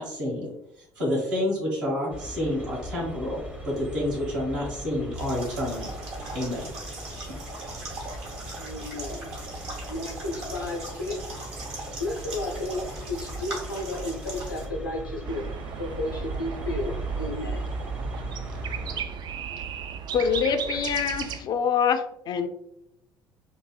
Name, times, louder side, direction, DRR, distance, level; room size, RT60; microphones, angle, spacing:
voice 1, 0.0-3.4 3.6-5.9 6.3-6.6, left 1 dB, 75° right, -5 dB, 1.4 m, -29 dB
sound 1, 2.1-19.0, right 1 dB, 10° right, 0.6 m, -39 dB
sound 2, 5.1-14.7, right 2 dB, 60° right, 1.1 m, -39 dB
voice 2, 8.6-9.3 9.9-11.4 12.0-15.4 15.8-17.6, left 2 dB, 85° left, -2 dB, 0.6 m, -33 dB
sound 3, 15.2-21.4, right 7 dB, 40° right, 0.3 m, -35 dB
voice 3, 20.1-22.5, left 7 dB, 40° left, 8 dB, 0.4 m, -25 dB
3.8 x 2.5 x 2.3 m, 0.80 s
figure-of-eight pair, 55°, 11 cm